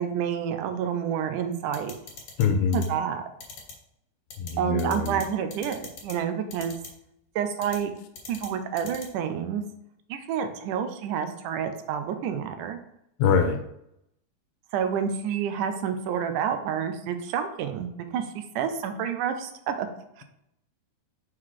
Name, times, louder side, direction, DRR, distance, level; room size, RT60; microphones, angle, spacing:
voice 1, 0.0-2.0 2.7-3.3 4.6-6.8 7.4-7.9 8.3-9.6 10.1-12.8 14.7-19.9 20.2-20.3, right 8 dB, 85° right, 8 dB, 2.2 m, -29 dB
sound 1, 1.7-2.4 2.7-2.9 3.4-3.7 4.3-4.5 4.8-5.2 5.5-6.1 6.5-6.9 7.6-7.8 8.2-8.5 8.8-9.1, left 5 dB, 50° left, 2.3 m, -40 dB
voice 2, 2.4-2.9 4.4-5.2 13.2-13.6, left 6 dB, 80° left, 6 dB, 2.3 m, -24 dB
6.4 x 3.8 x 4.7 m, 0.78 s
omnidirectional pair, 3.6 m